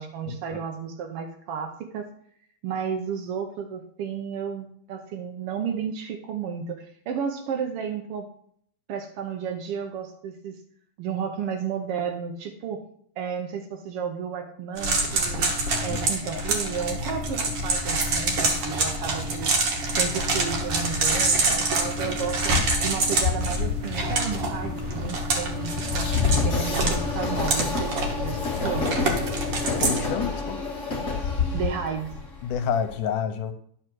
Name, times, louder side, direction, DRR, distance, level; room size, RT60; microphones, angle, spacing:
voice 1, 0.0-2.1 2.6-8.3 8.9-10.6 11.0-12.8 13.2-15.5 15.8-19.6 20.0-22.5 22.8-28.9 31.5-32.2, right 7 dB, 75° right, 4 dB, 1.3 m, -32 dB
sound 1, 14.8-30.1, right 2 dB, 55° right, 2.0 m, -26 dB
Train, 22.5-32.9, left 4 dB, 30° left, 1.4 m, -29 dB
voice 2, 29.8-30.6 32.4-33.5, left 8 dB, 80° left, 9 dB, 2.3 m, -28 dB
10.5 x 4.8 x 6.1 m, 0.64 s
omnidirectional pair, 3.6 m